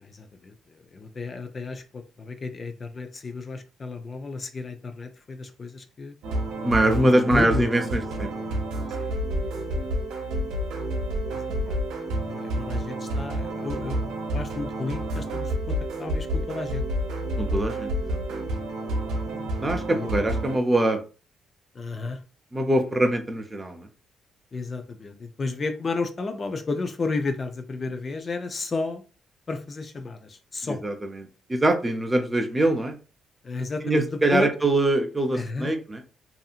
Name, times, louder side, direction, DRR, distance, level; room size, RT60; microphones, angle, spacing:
voice 1, 0.0-6.2 6.8-7.6 9.0-9.9 11.3-11.8 12.2-16.8 19.9-20.1 21.7-22.2 24.5-29.0 29.5-30.8 33.4-34.5 35.3-35.7, left 3 dB, 35° left, 7 dB, 0.4 m, -32 dB
sound 1, 6.2-20.6, right 1 dB, 90° right, 0.7 m, -29 dB
voice 2, 6.6-8.6 11.5-11.8 17.4-18.5 19.6-21.0 22.5-23.9 30.6-33.0 33.8-36.0, right 1 dB, 15° right, 4 dB, 0.5 m, -24 dB
2.7 x 2.6 x 2.4 m, 0.34 s
cardioid pair, 90°, 0 cm